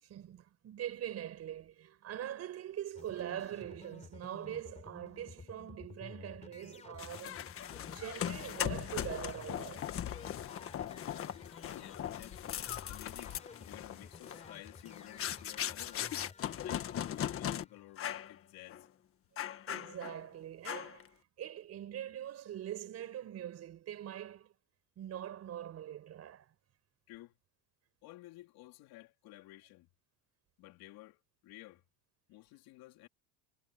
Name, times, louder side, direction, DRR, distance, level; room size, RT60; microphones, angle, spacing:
voice 1, 0.0-7.4 7.9-9.9 19.7-24.5 25.0-26.5, right 11 dB, 40° right, 4.6 m, -43 dB
sound 1, 2.9-18.3, left 4 dB, 15° left, 3.0 m, -54 dB
sound 2, 7.0-17.6 18.0-18.3 18.7-18.8 19.4-20.2 20.7-21.1, left 10 dB, 35° left, 1.4 m, -39 dB
voice 2, 11.6-12.4 12.9-16.2 16.6-18.9 27.1-27.4 28.0-29.9 30.6-31.8 32.3-33.1, left 18 dB, 60° left, 3.5 m, -54 dB
cardioid pair, 145°, 41 cm